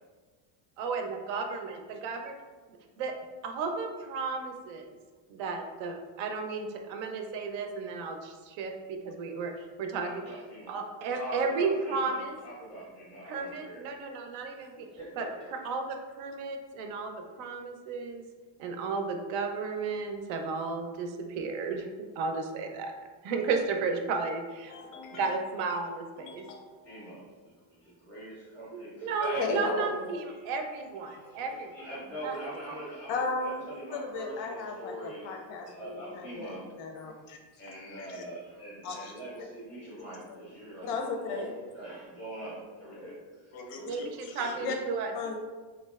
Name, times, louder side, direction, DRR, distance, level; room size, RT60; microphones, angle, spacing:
voice 1, 0.8-2.3 3.0-3.1 3.4-4.9 5.3-9.5 9.8-10.1 10.7-12.3 13.3-14.9 15.2-15.3 15.5-18.2 18.6-22.9 23.2-24.7 25.1-26.5 28.7-31.9 32.2-32.3 43.8-45.1, right 4 dB, 85° right, 4 dB, 0.5 m, -33 dB
voice 2, 10.0-10.7 11.2-12.1 12.4-13.8 14.7-15.5 26.8-29.5 30.2-30.3 31.1-31.4 31.7-36.7 37.6-41.0 41.3-41.5 41.7-43.7 44.4-44.6, right 1 dB, 5° left, -8 dB, 0.4 m, -43 dB
voice 3, 24.7-25.3 25.6-25.8 26.2-27.0 29.4-30.1 31.2-31.3 31.8-31.9 32.3-32.4 33.1-38.2 38.8-39.5 40.8-41.7 43.0-43.2 43.5-44.8 45.1-45.4, left 3 dB, 90° left, 3 dB, 0.6 m, -37 dB
2.9 x 2.4 x 2.3 m, 1.4 s
cardioid pair, 170°, 46 cm